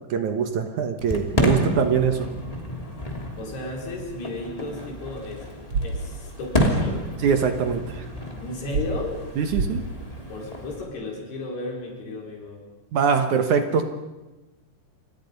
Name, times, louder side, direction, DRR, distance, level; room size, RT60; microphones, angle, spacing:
voice 1, 0.1-2.3 7.2-8.0 9.4-9.8 12.9-13.9, right 6 dB, 65° right, 7 dB, 2.1 m, -23 dB
Fireworks, 1.0-10.9, left 1 dB, 10° left, 2.2 m, -30 dB
voice 2, 3.4-5.5 5.8-7.0 8.4-9.2 10.3-12.6, left 2 dB, 70° left, 0 dB, 6.9 m, -34 dB
sound 1, 5.7-5.9 6.5-6.7 8.7-8.9 9.5-9.7, right 5 dB, 50° right, 2.3 m, -24 dB
29.5 x 25.0 x 5.4 m, 1.1 s
omnidirectional pair, 4.9 m